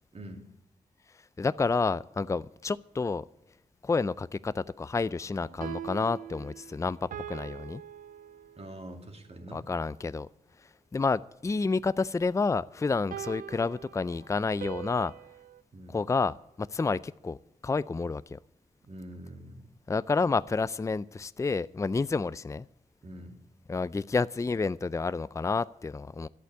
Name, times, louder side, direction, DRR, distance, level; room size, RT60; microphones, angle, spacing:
voice 1, 0.1-0.4 8.6-9.7 15.7-16.0 18.8-19.7 23.0-23.4, right 1 dB, 45° right, 3 dB, 2.4 m, -44 dB
voice 2, 1.4-3.2 3.8-7.8 9.5-10.3 10.9-15.1 15.9-17.4 17.6-18.4 19.9-22.7 23.7-26.3, left 4 dB, 20° left, 18 dB, 0.4 m, -29 dB
sound 1, 5.4-8.9 13.1-15.6, right 10 dB, 85° right, 0.5 m, -42 dB
11.0 x 8.2 x 9.6 m, 0.78 s
cardioid pair, 50°, 14 cm